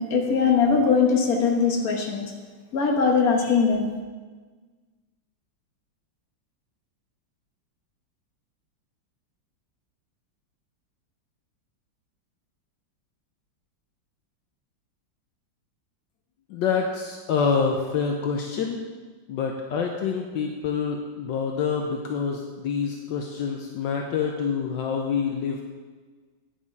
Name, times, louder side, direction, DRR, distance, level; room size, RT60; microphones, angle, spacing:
voice 1, 0.0-2.3 2.7-3.9, left 5 dB, 50° left, 2 dB, 1.7 m, -21 dB
voice 2, 16.5-18.8 19.3-25.6, left 6 dB, 75° left, 2 dB, 1.4 m, -27 dB
9.6 x 7.2 x 5.3 m, 1.4 s
omnidirectional pair, 2.1 m